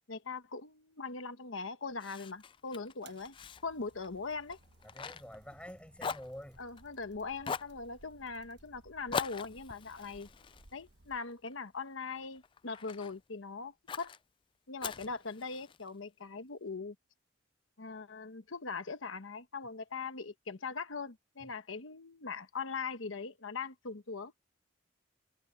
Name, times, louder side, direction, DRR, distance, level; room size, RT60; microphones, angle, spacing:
voice 1, 0.1-3.3 3.6-4.6 6.6-10.3 10.7-14.1 14.7-16.9 17.8-24.3, left 4 dB, 85° left, 1.2 m, -41 dB
Fire, 2.0-5.7 6.0-7.0 7.4-7.8 9.1-11.5 12.0-13.2 13.9-14.2 14.8-15.9, left 5 dB, 25° left, 0.3 m, -42 dB
sound 1, 3.0-11.2, right 2 dB, 55° right, 1.3 m, -62 dB
voice 2, 4.8-6.6 21.4-21.5, equal, 5° left, 6.6 m, -48 dB
head